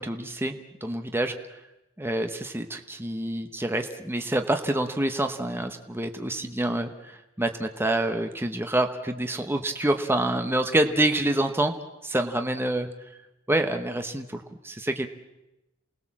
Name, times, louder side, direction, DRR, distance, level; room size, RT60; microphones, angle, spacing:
voice 1, 0.0-1.6 2.0-11.7 12.0-12.9 13.5-15.1, right 1 dB, 10° right, 6 dB, 1.0 m, -27 dB
28.5 x 19.0 x 7.4 m, 0.97 s
head